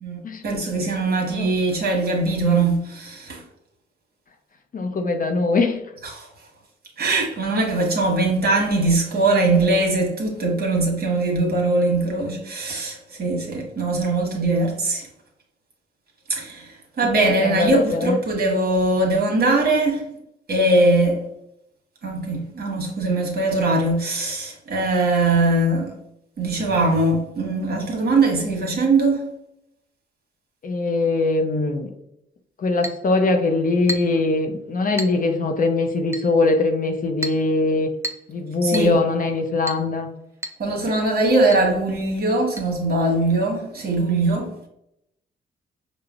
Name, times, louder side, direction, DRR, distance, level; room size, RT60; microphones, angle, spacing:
voice 1, 0.0-3.4 6.0-6.3 7.0-15.1 16.3-20.1 20.5-21.3 22.0-25.9 26.4-29.3 38.6-39.0 40.6-44.7, right 2 dB, 50° right, 1.1 m, -21 dB
voice 2, 4.7-5.8 17.4-18.2 30.6-31.9 32.6-37.9 38.3-40.1, left 3 dB, 40° left, 0.5 m, -21 dB
Chink clink, 32.8-33.1 33.9-34.2 35.0-35.2 36.1-36.3 37.2-37.5 38.0-38.3 38.7-39.0 39.7-39.9 40.4-40.6 40.9-41.0 41.5-41.7 42.6-42.7, right 1 dB, 15° right, 0.4 m, -31 dB
4.8 x 2.0 x 2.3 m
cardioid pair, 65°, 21 cm